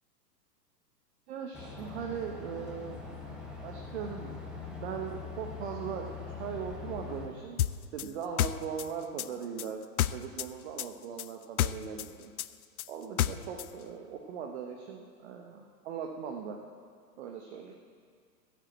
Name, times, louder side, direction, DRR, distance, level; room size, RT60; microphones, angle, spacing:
voice 1, 1.3-3.0 3.6-4.4 4.8-6.1 6.4-7.6 7.9-9.8 10.1-12.3 12.9-16.6 17.2-17.8, right 7 dB, 40° right, 3 dB, 1.1 m, -39 dB
sound 1, 1.5-7.3, left 4 dB, ahead, 1.1 m, -42 dB
sound 2, 7.6-10.5 10.8-13.7, left 12 dB, 60° left, 0.5 m, -30 dB
15.0 x 6.9 x 7.8 m, 2.1 s
figure-of-eight pair, 105°, 50 cm